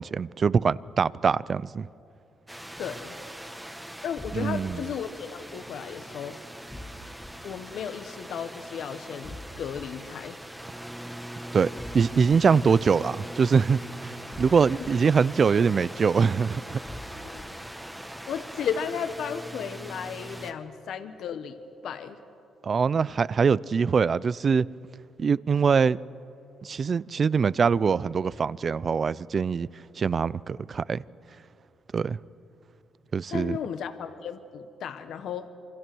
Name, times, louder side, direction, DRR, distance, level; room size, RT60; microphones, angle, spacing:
voice 1, 0.0-1.9 4.3-4.8 11.5-16.8 22.6-24.7 25.2-26.0 26.6-29.7 30.0-31.0 31.9-32.2 33.1-33.6, right 5 dB, 45° right, 0.5 m, -23 dB
sound 1, 2.5-20.5, right 1 dB, 5° right, 1.7 m, -41 dB
voice 2, 2.8-3.1 4.0-6.4 7.4-10.4 14.7-14.9 17.3-17.5 18.3-21.6 21.8-22.2 33.3-35.5, left 7 dB, 70° left, 1.3 m, -34 dB
sound 2, 4.2-4.7 6.7-7.3 9.2-9.8 11.8-12.4 14.3-14.9 16.8-17.4, left 1 dB, 15° left, 2.2 m, -42 dB
27.0 x 25.0 x 6.2 m
cardioid pair, 90°, 0 cm